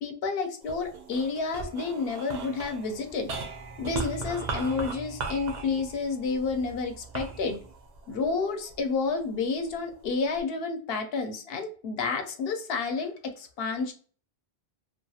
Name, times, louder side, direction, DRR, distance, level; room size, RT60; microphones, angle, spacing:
voice 1, 0.0-3.3 3.8-7.6 8.1-13.9, left 4 dB, 70° left, 5 dB, 0.8 m, -30 dB
sound 1, 0.6-9.1 9.7-10.4, right 4 dB, 55° right, 0.5 m, -38 dB
2.4 x 2.3 x 2.7 m, 0.42 s
omnidirectional pair, 1.1 m